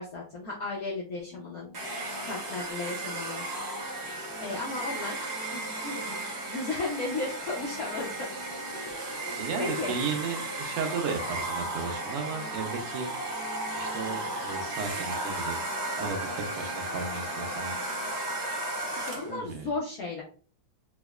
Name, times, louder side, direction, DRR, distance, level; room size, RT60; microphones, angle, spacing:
voice 1, 0.0-1.7 2.3-3.4 4.4-8.3 8.7-9.0 9.2-9.9 19.0-20.2, left 3 dB, 65° left, -3 dB, 0.9 m, -35 dB
sound 1, 1.3-18.1, left 3 dB, 45° left, 0.7 m, -51 dB
Domestic sounds home sounds, 1.7-19.4, right 2 dB, 60° right, 0.7 m, -35 dB
voice 2, 9.4-13.1 13.8-15.6 15.9-17.7 19.2-19.7, right 5 dB, 90° right, 4 dB, 1.7 m, -35 dB
5.0 x 2.1 x 2.3 m, 0.40 s
omnidirectional pair, 2.4 m